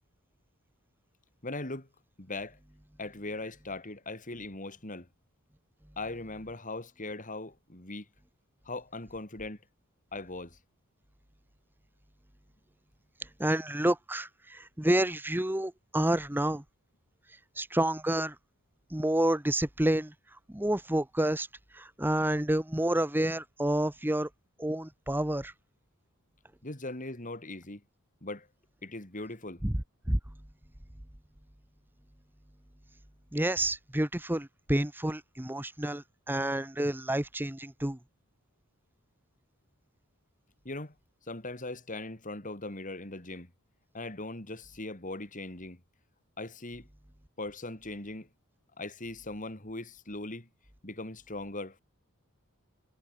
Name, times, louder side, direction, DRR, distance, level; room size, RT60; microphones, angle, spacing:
voice 1, 1.4-1.9 2.2-2.6 3.0-5.1 6.0-8.0 8.6-9.6 10.1-10.6 26.6-27.8 28.2-28.5 28.8-29.6 40.6-40.9 41.3-43.5 43.9-45.8 46.4-46.9 47.4-48.3 48.8-50.5 50.8-51.8, left 2 dB, 35° left, 3.3 m, -39 dB
voice 2, 13.2-16.6 17.3-18.3 18.9-21.5 21.7-24.3 24.6-25.5 29.6-29.8 30.1-30.2 33.3-38.0, right 1 dB, 10° right, 1.1 m, -29 dB
head